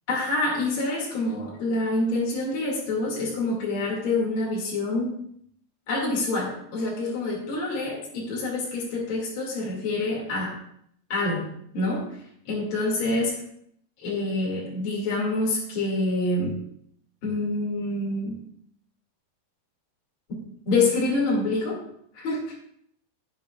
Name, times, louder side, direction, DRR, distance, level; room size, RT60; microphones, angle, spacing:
voice 1, 0.1-5.1 5.9-10.5 11.1-11.4 11.7-12.1 12.5-13.4 14.0-16.5 17.2-18.4 20.3-20.4 20.7-21.8 22.1-22.5, left 2 dB, 40° left, -4 dB, 2.2 m, -26 dB
17.0 x 7.0 x 2.3 m, 0.67 s
omnidirectional pair, 4.9 m